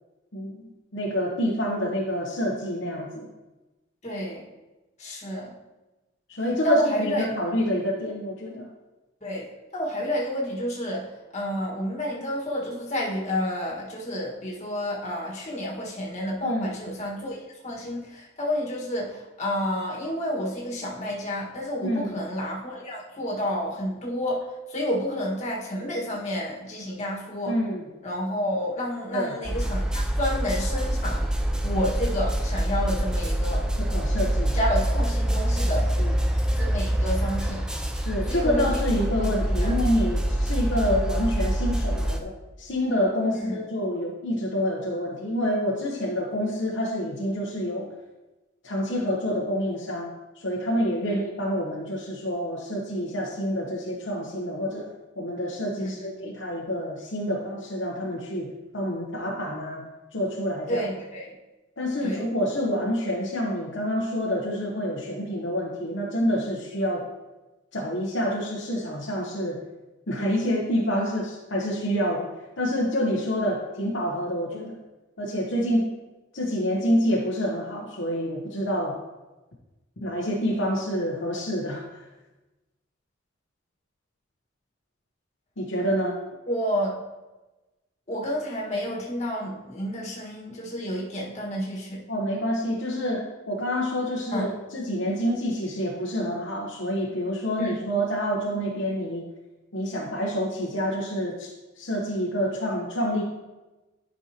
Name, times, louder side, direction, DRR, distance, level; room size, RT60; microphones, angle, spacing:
voice 1, 0.3-0.6 0.9-3.3 6.3-8.7 16.4-16.8 21.8-22.2 27.5-27.9 29.1-29.3 33.8-34.6 36.0-36.2 38.0-47.9 48.6-59.8 60.1-60.9 61.8-67.1 67.7-69.6 70.1-72.3 72.6-74.8 75.2-75.9 76.3-79.0 80.0-82.0 85.6-86.2 92.1-99.2 99.7-103.2, equal, 65° left, -2 dB, 1.0 m, -27 dB
voice 2, 4.0-4.4 5.0-5.5 6.6-7.3 9.2-9.5 9.7-11.1 11.3-27.5 28.0-31.2 31.6-33.7 34.5-35.9 36.6-37.6 38.3-38.6 39.5-39.8 43.3-43.6 51.1-51.2 55.8-55.9 60.7-61.3 62.0-62.2 86.5-86.9 88.1-92.0 94.3-94.5 97.6-97.7, equal, 35° left, -4 dB, 1.6 m, -30 dB
sound 1, 29.4-42.2, right 1 dB, 5° right, 0.4 m, -25 dB
11.0 x 5.5 x 2.9 m, 1.1 s
head